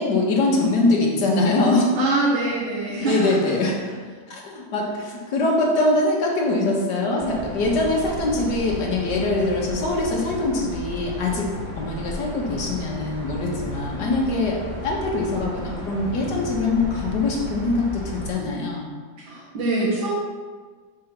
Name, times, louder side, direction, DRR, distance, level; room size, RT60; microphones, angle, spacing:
voice 1, 0.0-1.9 3.0-3.9 4.3-11.5 11.8-18.9, left 2 dB, 65° left, -2 dB, 1.7 m, -23 dB
voice 2, 1.9-3.5 19.2-20.1, right 2 dB, 80° right, -7 dB, 2.0 m, -24 dB
sound 1, 7.2-18.3, left 1 dB, 60° right, 2.0 m, -34 dB
5.5 x 3.8 x 5.9 m, 1.5 s
omnidirectional pair, 2.1 m